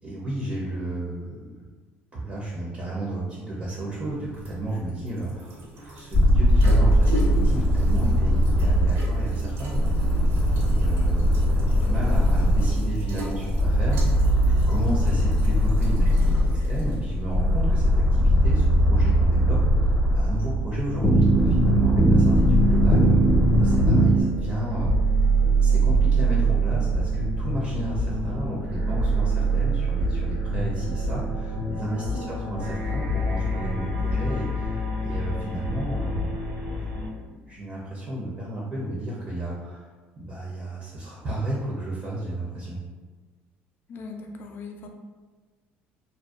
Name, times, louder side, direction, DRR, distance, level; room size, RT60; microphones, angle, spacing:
voice 1, 0.0-1.4 2.1-10.0 10.6-14.2 14.7-23.2 23.6-24.9 25.6-36.8 37.3-39.9 40.2-42.8, right 1 dB, 30° right, -5 dB, 0.5 m, -33 dB
sound 1, 3.8-18.7, equal, 65° right, 0.7 m, -40 dB
sound 2, 6.1-24.2, equal, 25° left, 0.7 m, -20 dB
sound 3, 22.3-37.1, right 3 dB, 85° right, 1.3 m, -25 dB
voice 2, 32.1-32.4 43.9-44.9, left 3 dB, 45° left, 3 dB, 0.3 m, -38 dB
2.5 x 2.1 x 2.3 m, 1.4 s
cardioid pair, 110°, 5 cm